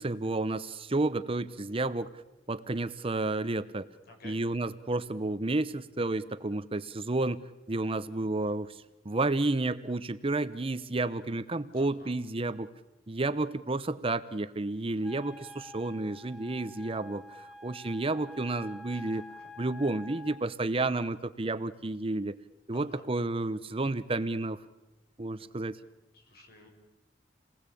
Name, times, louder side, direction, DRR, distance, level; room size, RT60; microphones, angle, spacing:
voice 1, 0.0-2.1 2.5-3.9 4.2-7.4 7.7-8.7 9.0-12.7 13.1-19.2 19.6-22.3 22.7-24.6 25.2-25.8, right 2 dB, 30° right, 13 dB, 0.8 m, -31 dB
voice 2, 4.1-4.4 11.7-12.1 18.9-19.5 22.7-23.0 25.4-25.5 26.1-26.7, left 2 dB, 60° left, 3 dB, 6.0 m, -53 dB
Wind instrument woodwind instrument, 15.0-20.4, left 1 dB, ahead, 2.6 m, -48 dB
28.5 x 19.5 x 8.5 m, 0.99 s
head